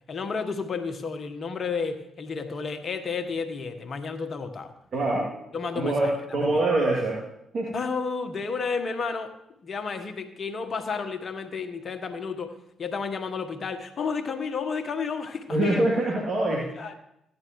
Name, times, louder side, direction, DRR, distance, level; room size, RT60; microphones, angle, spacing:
voice 1, 0.1-4.7 5.5-6.6 7.7-9.3 9.6-15.8 16.8-16.9, left 5 dB, 55° left, 8 dB, 1.3 m, -32 dB
voice 2, 4.9-5.3 5.7-7.2 7.5-7.7 15.5-16.6, right 2 dB, 50° right, -4 dB, 2.8 m, -24 dB
15.0 x 10.5 x 3.1 m, 0.82 s
hypercardioid pair, 45°, 0 cm